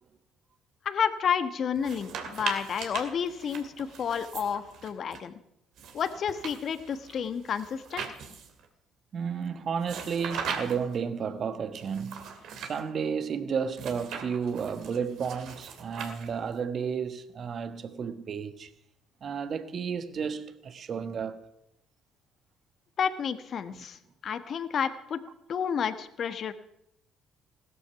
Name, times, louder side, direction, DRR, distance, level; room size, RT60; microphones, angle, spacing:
voice 1, 0.8-5.3 5.9-8.0 23.0-25.2 25.5-26.5, left 7 dB, 55° left, 1.3 m, -30 dB
sound 1, 1.8-5.2 5.8-8.7 9.8-11.0 11.8-12.8 13.7-16.6, right 6 dB, 65° right, 2.4 m, -40 dB
voice 2, 9.1-18.7 19.2-21.4 23.7-23.8, right 6 dB, 50° right, 1.3 m, -32 dB
16.5 x 13.0 x 5.8 m
hypercardioid pair, 60°, 0 cm